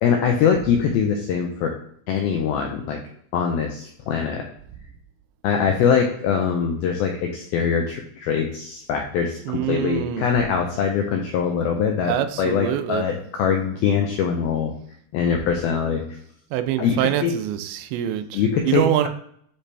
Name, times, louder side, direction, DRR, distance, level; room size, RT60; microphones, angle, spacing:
voice 1, 0.0-1.7 2.1-3.0 3.3-4.4 5.4-14.7 15.1-16.0 16.8-17.3 18.3-19.1, left 7 dB, 90° left, 3 dB, 2.1 m, -23 dB
voice 2, 9.5-10.3 12.1-13.0 16.5-19.1, right 11 dB, 90° right, 9 dB, 2.9 m, -25 dB
9.9 x 3.4 x 3.3 m, 0.65 s
omnidirectional pair, 5.1 m